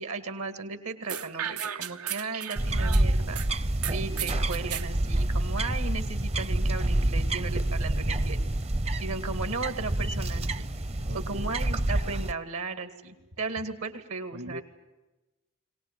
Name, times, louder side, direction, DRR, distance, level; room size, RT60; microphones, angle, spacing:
voice 1, 0.0-3.4 3.9-8.4 9.0-10.7 11.1-14.6, right 4 dB, 75° right, 9 dB, 2.3 m, -36 dB
sound 1, 1.1-3.5 3.8-4.9, right 9 dB, 90° right, 1.0 m, -35 dB
sound 2, 2.6-12.3, right 1 dB, 30° right, 0.7 m, -28 dB
voice 2, 11.0-11.7 14.3-14.6, equal, 55° right, 5 dB, 1.8 m, -42 dB
22.5 x 18.5 x 9.2 m, 1.1 s
head